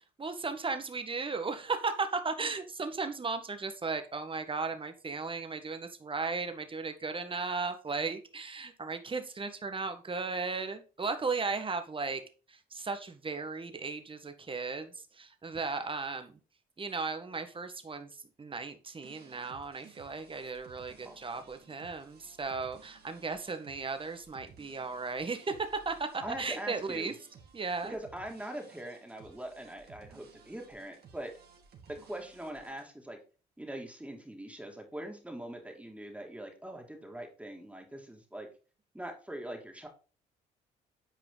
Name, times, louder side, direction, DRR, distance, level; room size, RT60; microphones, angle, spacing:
voice 1, 0.2-12.2 12.5-16.4 16.8-18.1 18.4-27.1 27.5-28.0, right 4 dB, 30° right, 8 dB, 1.5 m, -36 dB
sound 1, 19.0-32.8, right 6 dB, 60° right, 2.2 m, -57 dB
voice 2, 21.0-21.5 26.2-27.1 27.8-31.3 32.0-33.2 33.6-38.5 38.9-39.9, right 1 dB, 5° right, 2 dB, 2.6 m, -42 dB
9.3 x 4.8 x 4.0 m, 0.35 s
supercardioid pair, 65°, 18 cm